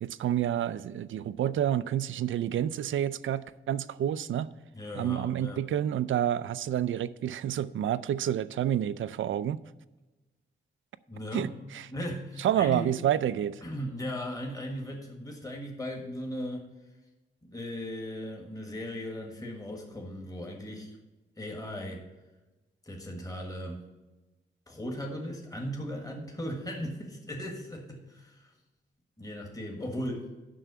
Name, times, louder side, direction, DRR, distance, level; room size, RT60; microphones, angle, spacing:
voice 1, 0.0-4.5 4.9-9.6 11.3-11.9 12.4-13.6, right 10 dB, 80° right, 0.4 m, -29 dB
voice 2, 4.7-5.6 11.1-11.6 11.9-12.9 13.6-16.7 17.4-21.0 21.4-22.0 22.8-23.9 24.7-28.5 29.2-30.3, equal, 20° left, 1.6 m, -37 dB
7.6 x 5.9 x 6.8 m
cardioid pair, 95°, 20 cm